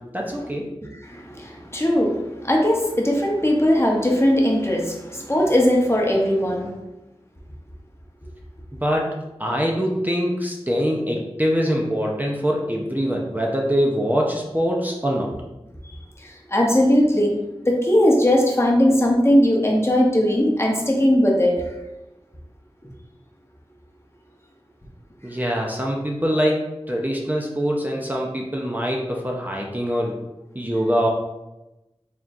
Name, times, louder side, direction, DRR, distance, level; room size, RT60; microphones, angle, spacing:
voice 1, 0.1-0.9 8.7-15.3 25.2-30.1 30.5-31.1, equal, 15° right, -1 dB, 0.6 m, -24 dB
voice 2, 0.8-6.7 16.2-17.3 17.6-21.6, equal, 25° left, -1 dB, 0.8 m, -19 dB
4.3 x 3.6 x 2.5 m, 0.99 s
wide cardioid pair, 45°, 10 cm